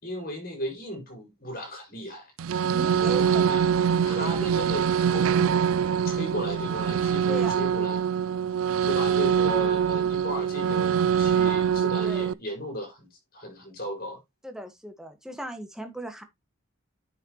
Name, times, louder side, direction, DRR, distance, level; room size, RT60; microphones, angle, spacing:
voice 1, 0.0-2.3 2.9-3.7 4.0-5.5 5.9-8.0 8.9-14.2, equal, 45° left, 5.5 m, -36 dB
sound 1, 2.4-12.3, right 8 dB, 85° right, 0.4 m, -24 dB
voice 2, 2.7-3.6 4.1-4.5 7.3-7.6 12.0-12.3 14.4-16.2, right 1 dB, 5° right, 1.5 m, -38 dB
9.6 x 5.8 x 3.1 m
head